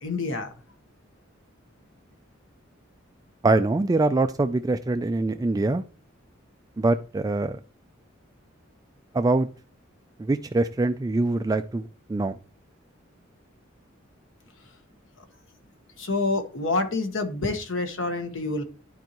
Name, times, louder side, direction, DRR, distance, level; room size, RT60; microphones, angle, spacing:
voice 1, 0.0-0.5 16.0-18.6, left 3 dB, 70° left, 1.3 m, -27 dB
voice 2, 3.4-5.8 6.8-7.6 9.1-9.5 10.2-12.4, right 2 dB, 20° right, 0.3 m, -24 dB
11.5 x 4.5 x 3.0 m
head